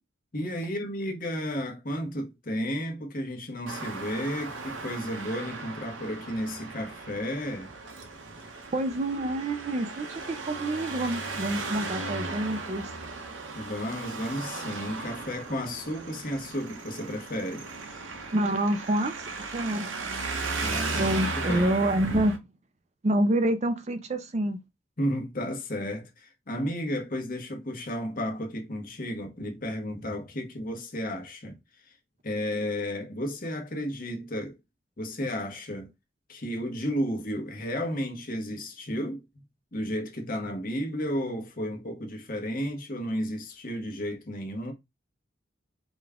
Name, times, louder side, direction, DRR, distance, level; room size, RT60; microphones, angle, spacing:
voice 1, 0.3-7.7 13.5-17.7 20.6-21.7 25.0-31.6 31.8-31.9 32.2-34.6 35.0-35.9 36.3-39.2 39.7-44.7, equal, 45° left, 1.1 m, -33 dB
Traffic noise roadway noise, 3.7-22.4, right 3 dB, 80° right, 0.9 m, -36 dB
voice 2, 8.7-12.9 18.3-19.2 19.5-20.0 20.4-22.4 23.0-24.6, right 1 dB, 35° right, 0.4 m, -27 dB
5.0 x 2.3 x 3.6 m
head